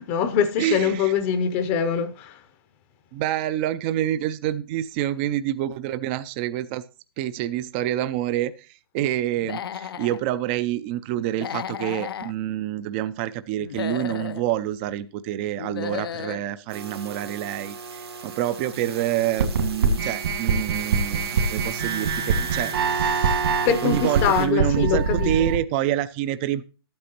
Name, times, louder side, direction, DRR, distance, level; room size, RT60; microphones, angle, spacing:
voice 1, 0.0-2.4 23.6-25.3, left 7 dB, 30° left, 0.7 m, -23 dB
voice 2, 0.6-1.1 3.1-6.8 7.2-23.4 23.8-26.6, right 12 dB, 25° right, 0.4 m, -27 dB
Human voice / Animal, 9.4-10.2 11.3-12.3 13.6-14.4 15.6-16.4, left 8 dB, 70° left, 0.5 m, -33 dB
sound 1, 16.7-24.5, right 3 dB, 90° right, 2.2 m, -34 dB
sound 2, 19.4-25.6, right 5 dB, 65° right, 2.0 m, -24 dB
12.0 x 8.6 x 2.9 m
hypercardioid pair, 150°, 13 cm